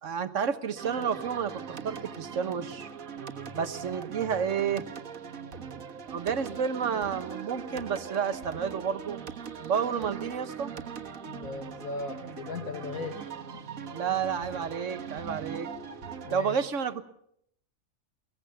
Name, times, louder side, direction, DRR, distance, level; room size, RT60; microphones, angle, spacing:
voice 1, 0.0-2.9 3.5-4.9 6.0-9.2 9.6-10.7 13.9-15.7 16.3-17.0, right 7 dB, 65° right, 12 dB, 1.5 m, -30 dB
sound 1, 0.8-16.4, right 6 dB, 90° right, 1.8 m, -41 dB
voice 2, 11.3-13.6 16.2-16.6, left 3 dB, 90° left, 5 dB, 2.2 m, -38 dB
22.0 x 20.0 x 6.9 m, 0.70 s
omnidirectional pair, 1.4 m